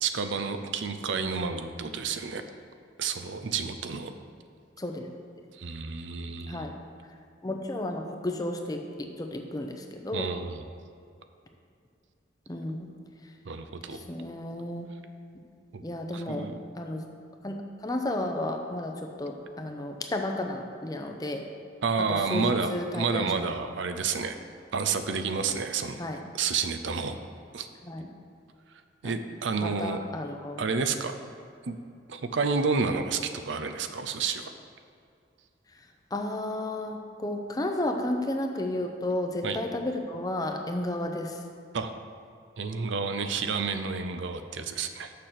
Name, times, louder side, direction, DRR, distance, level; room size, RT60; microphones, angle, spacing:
voice 1, 0.0-2.4 3.0-4.1 5.5-6.7 10.1-10.7 13.5-14.0 15.7-15.8 16.1-16.6 21.8-24.4 24.7-26.0 26.3-27.2 27.5-27.7 29.0-30.0 30.6-31.2 31.6-31.8 32.1-33.2 33.5-34.5 39.4-39.6 41.7-41.9 42.6-45.1, right 5 dB, 75° right, 8 dB, 0.5 m, -30 dB
voice 2, 7.4-10.3 12.5-12.9 14.1-14.9 15.8-16.5 16.8-17.1 17.4-17.6 17.8-21.4 22.3-23.3 26.0-26.2 27.9-28.1 29.0-29.2 29.6-30.6 36.1-41.4, left 1 dB, 20° left, 4 dB, 0.6 m, -32 dB
6.6 x 6.6 x 5.8 m, 2.4 s
head